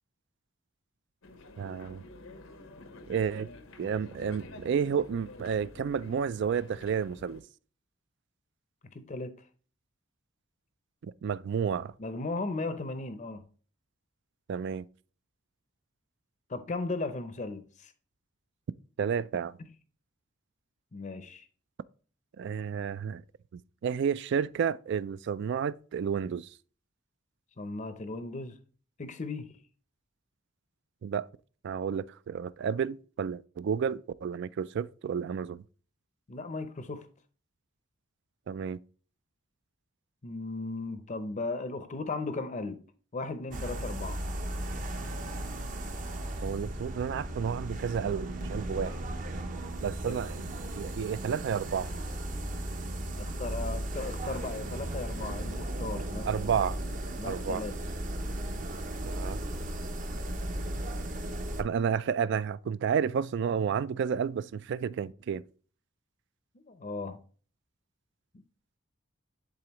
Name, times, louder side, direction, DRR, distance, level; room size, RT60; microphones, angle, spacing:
sound 1, 1.2-7.4, left 2 dB, 85° left, 0.9 m, -49 dB
voice 1, 1.6-2.0 3.1-3.5 3.8-7.4 11.0-11.9 14.5-14.9 19.0-19.6 22.4-23.2 23.8-26.5 31.0-31.2 31.6-35.6 38.5-38.8 46.4-49.0 49.8-51.9 56.2-56.8 57.3-57.6 59.0-59.4 61.6-65.4, right 7 dB, 60° right, 0.3 m, -31 dB
voice 2, 8.9-9.3 12.0-13.4 16.5-17.9 20.9-21.4 27.6-28.6 29.0-29.5 36.3-37.1 40.2-42.8 43.1-44.2 50.1-50.2 53.2-56.3 57.2-57.8 66.7-67.2, left 3 dB, 35° left, 0.6 m, -36 dB
sound 2, 43.5-61.6, right 1 dB, 40° right, 0.7 m, -36 dB
10.5 x 3.9 x 3.0 m
head